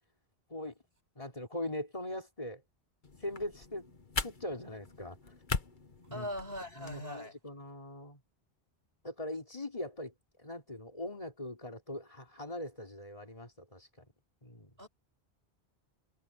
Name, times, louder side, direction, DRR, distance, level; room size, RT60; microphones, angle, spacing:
voice 1, 1.2-2.6 3.2-3.9 4.2-5.2 6.1-6.3 6.8-8.2 9.0-10.1 10.4-13.9 14.4-14.7, left 1 dB, 30° left, 4.1 m, -41 dB
sound 1, 3.0-7.0, left 4 dB, 50° left, 1.5 m, -40 dB
voice 2, 6.1-7.3 14.8-14.9, equal, 65° right, 7.9 m, -40 dB
omnidirectional pair, 1.1 m